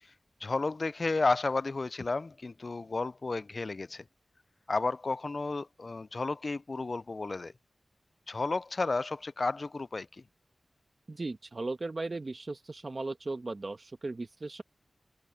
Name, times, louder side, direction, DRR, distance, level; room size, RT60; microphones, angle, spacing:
voice 1, 0.4-4.0 4.7-7.5 8.3-10.2, left 3 dB, 50° left, 0.3 m, -32 dB
voice 2, 11.1-14.6, right 3 dB, 45° right, 1.7 m, -37 dB
wide cardioid pair, 80°, 0 cm